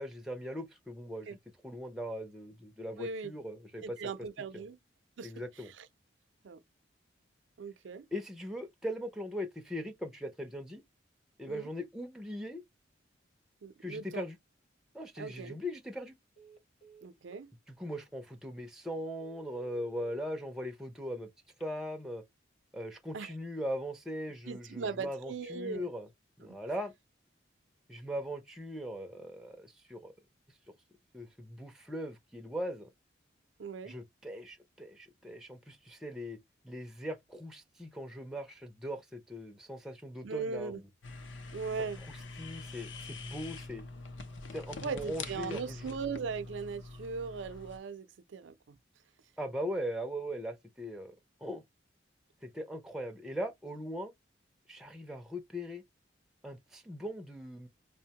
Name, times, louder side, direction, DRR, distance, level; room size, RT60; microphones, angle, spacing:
voice 1, 0.0-1.4 1.6-4.0 4.5-4.6 5.2-5.7 8.1-10.8 11.4-12.6 13.8-14.4 14.9-16.1 17.7-21.3 21.6-22.2 22.7-26.1 26.4-26.9 27.9-30.1 31.1-32.9 33.9-36.4 36.6-40.9 42.4-43.8 44.5-46.0 49.4-51.2 51.4-51.6 52.4-54.1 54.7-55.8 56.4-57.7, equal, 5° right, 0.4 m, -40 dB
voice 2, 3.0-3.3 3.8-4.8 5.2-5.3 5.6-5.9 6.4-6.6 7.6-8.1 11.5-11.7 13.6-14.3 15.2-15.6 17.0-17.5 23.1-23.3 24.4-25.9 33.6-34.0 40.2-40.8 41.5-42.0 44.8-48.8, right 5 dB, 75° right, 0.4 m, -39 dB
Telephone, 15.8-16.0 16.4-17.4 18.0-18.1 18.5-18.6 19.1-20.2 21.4-22.0, right 6 dB, 30° left, 0.8 m, -57 dB
sound 1, 41.0-47.8, left 3 dB, 75° left, 0.6 m, -45 dB
5.1 x 2.1 x 2.8 m
head